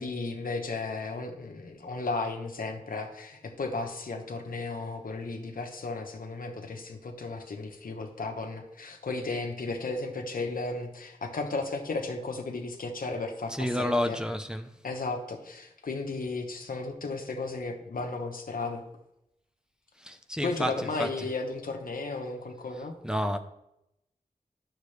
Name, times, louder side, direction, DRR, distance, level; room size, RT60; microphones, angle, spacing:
voice 1, 0.0-14.2 14.8-18.8 20.4-22.9, left 3 dB, 90° left, 1.0 m, -34 dB
voice 2, 13.6-14.7 20.0-20.7 21.0-21.1 23.0-23.4, equal, 5° right, 0.7 m, -29 dB
10.5 x 6.5 x 3.3 m
cardioid pair, 50°, 14 cm